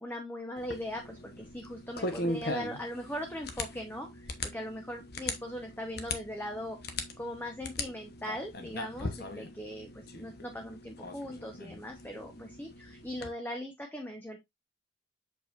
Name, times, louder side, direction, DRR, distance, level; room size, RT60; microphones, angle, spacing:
voice 1, 0.0-6.8 7.2-14.4, equal, 10° left, 3 dB, 1.0 m, -40 dB
sound 1, 0.6-13.3, left 2 dB, 60° left, 1.1 m, -40 dB
6.8 x 5.5 x 2.6 m, 0.18 s
head